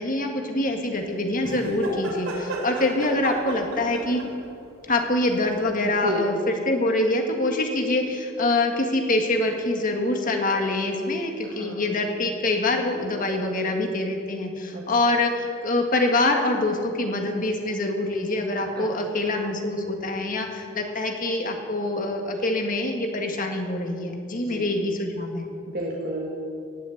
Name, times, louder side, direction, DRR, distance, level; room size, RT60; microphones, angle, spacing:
voice 1, 0.0-4.2 4.9-25.5, left 2 dB, 45° left, 3 dB, 1.7 m, -25 dB
sound 1, 1.4-4.5 5.8-5.9, right 1 dB, 80° right, 2.9 m, -33 dB
voice 2, 11.4-11.8 14.7-14.8 18.8-18.9 24.5-24.7 25.7-26.3, right 1 dB, 50° right, -2 dB, 1.7 m, -31 dB
17.5 x 6.5 x 9.2 m, 2.4 s
head